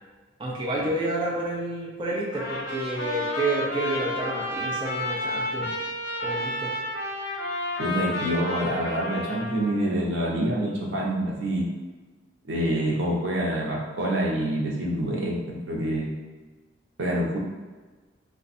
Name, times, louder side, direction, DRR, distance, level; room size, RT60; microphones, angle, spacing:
voice 1, 0.4-5.7 6.2-6.7, right 2 dB, 25° right, -3 dB, 0.4 m, -29 dB
Trumpet, 2.3-9.8, left 1 dB, 60° left, 0.7 m, -31 dB
voice 2, 7.8-11.7 12.5-16.1 17.0-17.4, right 1 dB, 80° right, -3 dB, 0.8 m, -26 dB
2.5 x 2.4 x 4.0 m, 1.3 s
head